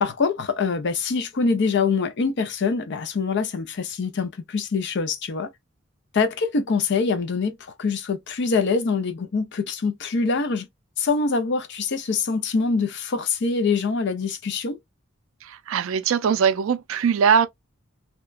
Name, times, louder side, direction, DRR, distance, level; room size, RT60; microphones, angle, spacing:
voice 1, 0.0-5.5 6.1-10.6 11.0-14.8, left 4 dB, 55° left, 0.5 m, -24 dB
voice 2, 15.4-17.5, right 7 dB, 70° right, 0.4 m, -21 dB
2.8 x 2.2 x 2.3 m
head